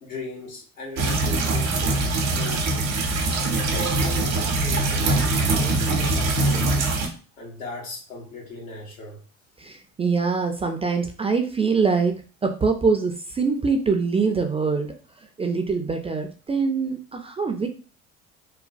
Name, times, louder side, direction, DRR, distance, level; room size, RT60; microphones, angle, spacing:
voice 1, 0.0-2.9 3.5-5.3 5.6-6.8 7.4-9.2, left 2 dB, 85° left, -2 dB, 1.2 m, -38 dB
sound 1, 1.0-7.1, right 2 dB, 85° right, 0.7 m, -23 dB
voice 2, 9.6-15.0 15.4-17.7, right 4 dB, 15° right, 5 dB, 0.3 m, -24 dB
3.0 x 2.1 x 2.5 m, 0.36 s
hypercardioid pair, 65°, 40 cm